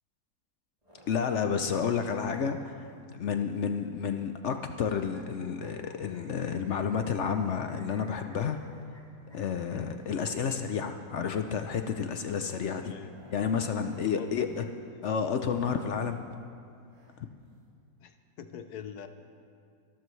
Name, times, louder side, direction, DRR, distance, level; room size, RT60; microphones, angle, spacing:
sound 1, 0.8-1.1 1.4-1.8 2.1-2.4 2.8-3.0 3.4-3.7 4.0-4.3 4.6-5.0 5.4-6.3 6.6-6.9 7.3-7.6 7.9-8.2 8.6-8.9 9.2-9.5 9.8-10.2 10.4-10.8 11.1-11.4 11.8-12.1 12.4-16.1 16.9-17.1 17.4-17.5 17.7-17.8, right 1 dB, 25° right, 3.7 m, -59 dB
voice 1, 1.1-8.6 9.3-12.9 13.3-14.7 15.0-16.2 17.2-17.3, left 6 dB, 60° left, 7 dB, 0.8 m, -30 dB
sound 2, 4.8-7.4 7.7-9.0 9.3-9.4 9.7-9.8 10.1-10.3 11.3-12.3, left 1 dB, 15° left, 2.4 m, -53 dB
voice 2, 12.8-13.1 13.6-13.7 14.0-14.7 18.0-19.1, left 8 dB, 80° left, 8 dB, 1.3 m, -44 dB
24.5 x 12.0 x 3.2 m, 2.3 s
omnidirectional pair, 1.7 m